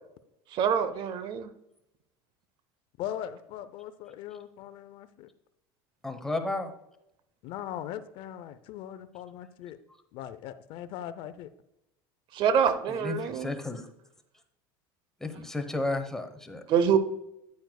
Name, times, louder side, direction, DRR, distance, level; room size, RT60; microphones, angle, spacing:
voice 1, 0.5-1.5 12.3-13.6 16.7-17.0, right 7 dB, 50° right, 12 dB, 0.8 m, -25 dB
voice 2, 3.0-5.3 7.4-9.8 10.1-11.5, left 11 dB, 60° left, 13 dB, 0.5 m, -40 dB
voice 3, 6.0-6.7 12.9-13.8 15.2-16.6, left 2 dB, 5° left, 6 dB, 0.9 m, -33 dB
9.5 x 8.8 x 2.3 m, 0.84 s
supercardioid pair, 125°, 10 cm